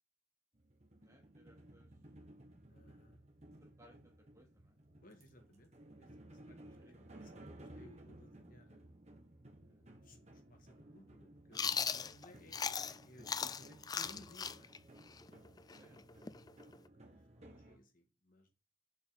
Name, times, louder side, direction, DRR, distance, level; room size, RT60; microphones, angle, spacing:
sound 1, 0.5-17.8, right 1 dB, 35° right, 1.7 m, -58 dB
voice 1, 1.0-1.9 3.6-4.8 6.5-7.2 9.6-9.8 15.8-16.8 17.3-17.9, equal, 15° right, 2.6 m, -67 dB
voice 2, 2.7-3.2 5.0-6.8 7.1-8.9 9.5-14.7 16.8-18.5, left 1 dB, 50° left, 1.8 m, -62 dB
Chewing mastication, 11.5-13.0 13.3-16.9, left 6 dB, 20° left, 0.4 m, -38 dB
6.9 x 5.5 x 7.0 m
head